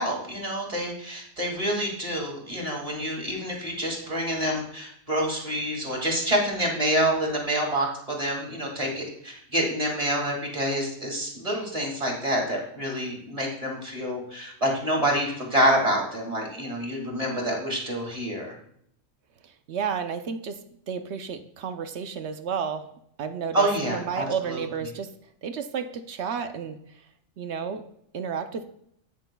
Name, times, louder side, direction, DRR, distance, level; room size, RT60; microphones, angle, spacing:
voice 1, 0.0-18.5 23.5-24.6, right 1 dB, 25° right, -1 dB, 2.2 m, -27 dB
voice 2, 19.4-20.6 20.9-22.9 23.2-25.1 25.4-26.8 27.4-27.8 28.1-28.7, right 6 dB, 65° right, 9 dB, 0.9 m, -31 dB
17.0 x 6.3 x 2.2 m, 0.70 s
omnidirectional pair, 1.3 m